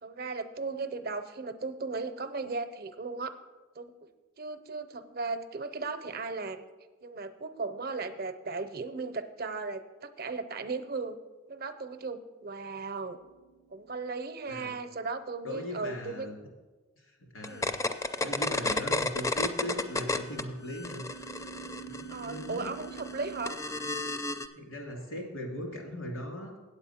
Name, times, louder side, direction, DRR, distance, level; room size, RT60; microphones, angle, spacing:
voice 1, 0.0-3.3 3.8-3.9 4.4-6.6 7.0-11.2 11.5-13.2 13.7-16.3 17.4-17.7 22.1-23.6, right 4 dB, 50° right, 10 dB, 0.6 m, -36 dB
sound 1, 13.2-13.9 19.9-23.5, right 7 dB, 60° left, 0.6 m, -46 dB
voice 2, 15.4-16.4 17.0-17.7 18.0-21.1 21.7-22.8 24.5-26.6, equal, 90° left, 0 dB, 2.5 m, -39 dB
sound 2, 17.4-20.4 20.7-24.5, left 2 dB, 15° left, 0.4 m, -32 dB
8.8 x 8.1 x 5.7 m, 1.3 s
head